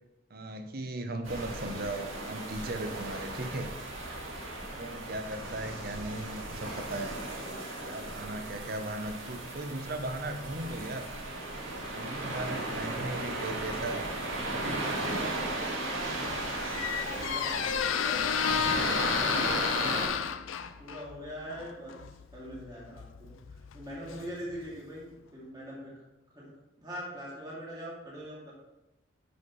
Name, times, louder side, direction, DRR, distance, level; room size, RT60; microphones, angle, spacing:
voice 1, 0.3-3.7 4.8-7.2 7.9-11.1 11.9-14.8 15.1-15.4, right 2 dB, 50° right, 7 dB, 0.8 m, -37 dB
sound 1, 1.2-20.1, right 2 dB, 85° right, 2.0 m, -36 dB
Squeak, 16.0-24.8, left 8 dB, 80° left, 0.5 m, -32 dB
voice 2, 16.9-20.1 20.8-21.9 22.3-25.9 26.3-26.5 26.8-28.5, equal, 20° right, -7 dB, 2.5 m, -42 dB
9.5 x 6.1 x 3.2 m, 0.98 s
head